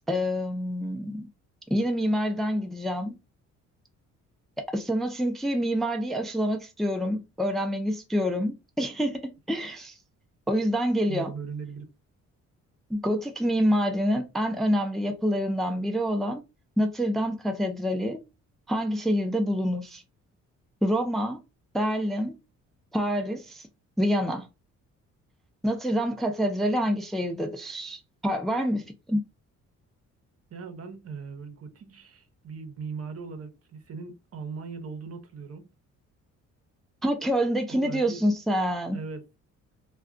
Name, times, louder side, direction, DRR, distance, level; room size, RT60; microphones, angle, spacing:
voice 1, 0.1-1.3 1.7-3.2 4.7-10.0 10.5-11.3 12.9-16.4 16.8-18.2 18.7-20.0 20.8-21.4 21.7-22.4 22.9-23.7 24.0-24.5 25.6-29.2 37.0-39.0, equal, ahead, 0.5 m, -27 dB
voice 2, 11.1-11.9 30.5-35.7 37.7-38.2 38.9-39.2, right 5 dB, 50° right, 0.9 m, -39 dB
2.3 x 2.3 x 3.6 m
cardioid pair, 90°, 30 cm